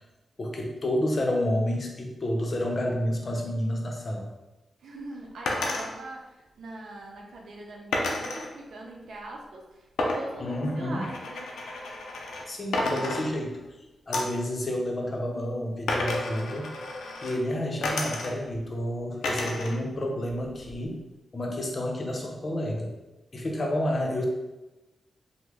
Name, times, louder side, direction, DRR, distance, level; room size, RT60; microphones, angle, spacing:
voice 1, 0.4-4.3 10.4-11.0 12.5-13.6 14.1-16.7 17.2-21.0 21.3-22.9 23.3-24.2, left 1 dB, 45° left, 0 dB, 0.7 m, -29 dB
voice 2, 4.8-11.5, right 2 dB, 80° right, 0 dB, 0.6 m, -42 dB
sound 1, 5.5-5.9 7.9-8.5 10.0-12.5 12.7-13.7 14.1-14.4 15.9-17.4 17.8-18.6 19.2-19.8 20.1-20.9, left 2 dB, 90° left, 0.4 m, -31 dB
3.0 x 2.1 x 3.4 m, 1.0 s
cardioid pair, 65°, 0 cm